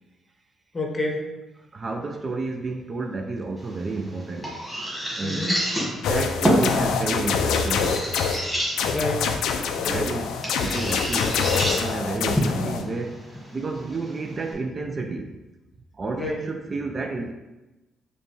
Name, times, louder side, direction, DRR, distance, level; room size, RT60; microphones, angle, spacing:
voice 1, 0.7-1.3 5.2-5.7 8.8-9.3 9.8-10.1 16.1-16.5, left 1 dB, 25° left, 0.7 m, -29 dB
voice 2, 1.7-4.5 5.2-5.6 6.1-8.1 9.8-13.3 13.5-15.4 15.9-17.3, right 3 dB, 35° right, 0.3 m, -31 dB
sound 1, 3.6-14.5, equal, 5° right, 1.4 m, -29 dB
sound 2, 6.0-8.4 8.8-12.8, left 6 dB, 85° left, 0.3 m, -25 dB
5.0 x 2.2 x 3.1 m
cardioid pair, 90°, 0 cm